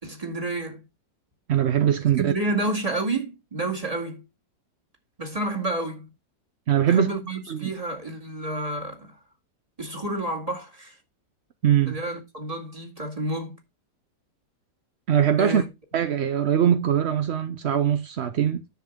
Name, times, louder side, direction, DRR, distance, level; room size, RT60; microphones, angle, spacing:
voice 1, 0.0-0.9 2.2-4.2 5.2-6.1 6.9-9.1 9.8-11.0 11.9-13.5 15.4-15.7, right 2 dB, 20° right, 2.2 m, -30 dB
voice 2, 1.5-2.3 6.7-7.1 7.5-7.7 11.6-12.0 15.1-15.6 15.9-18.6, right 9 dB, 60° right, 0.7 m, -21 dB
10.5 x 7.0 x 3.6 m
omnidirectional pair, 1.8 m